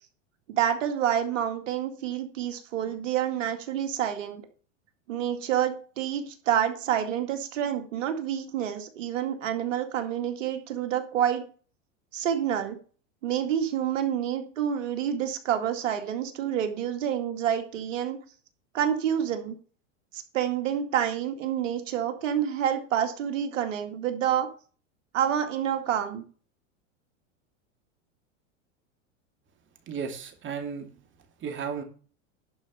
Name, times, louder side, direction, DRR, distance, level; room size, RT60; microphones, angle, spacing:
voice 1, 0.5-4.4 5.1-11.5 12.1-12.8 13.2-18.2 18.7-19.6 20.1-24.5 25.1-26.2, right 9 dB, 80° right, 5 dB, 2.2 m, -28 dB
voice 2, 29.9-30.9 31.4-31.8, right 6 dB, 30° right, 5 dB, 2.6 m, -34 dB
11.5 x 5.3 x 6.7 m, 0.39 s
hypercardioid pair, 115°, 38 cm